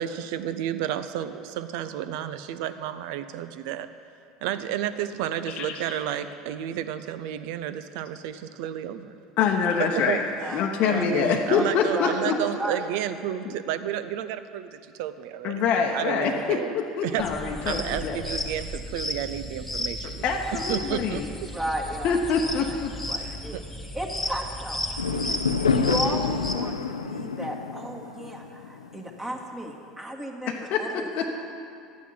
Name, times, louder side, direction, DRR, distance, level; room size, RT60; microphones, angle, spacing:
voice 1, 0.0-3.9 4.4-9.2 9.8-10.2 10.5-10.6 10.9-15.6 15.9-16.7 17.0-17.3 17.7-20.2 20.7-21.5 23.5-23.6, right 11 dB, 60° right, 12 dB, 0.6 m, -31 dB
voice 2, 5.5-5.8 9.4-10.2 10.5-12.4 13.4-13.5 15.4-18.2 20.2-21.2 22.0-22.9 23.2-23.4 30.5-31.2, left 6 dB, 50° left, 2 dB, 0.8 m, -25 dB
voice 3, 10.4-11.0 11.5-12.8 17.1-17.3 17.6-17.9 21.5-22.2 22.5-22.8 23.1-23.6 23.9-25.4 25.7-31.3, right 1 dB, 15° right, 0 dB, 1.9 m, -34 dB
sound 1, 17.2-26.5, left 1 dB, 5° left, 1.5 m, -34 dB
Fireworks, 25.0-29.4, left 5 dB, 85° left, 0.5 m, -28 dB
11.5 x 9.2 x 5.8 m, 2.5 s
figure-of-eight pair, 75°, 3 cm